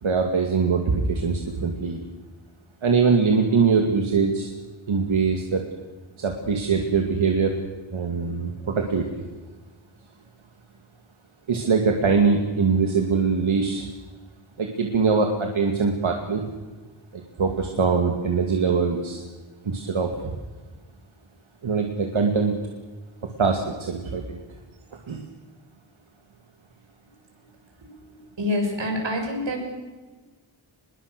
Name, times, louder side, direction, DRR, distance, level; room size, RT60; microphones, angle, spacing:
voice 1, 0.0-2.0 2.8-4.5 4.9-5.6 6.2-7.6 7.9-9.2 11.5-13.8 14.6-16.4 17.1-19.2 19.6-20.2 21.6-22.5 23.2-24.4 25.1-25.2, right 5 dB, 85° right, 3 dB, 2.5 m, -22 dB
voice 2, 28.4-29.6, left 1 dB, 70° right, 2 dB, 6.9 m, -26 dB
24.0 x 22.0 x 6.8 m, 1.3 s
wide cardioid pair, 100°, 46 cm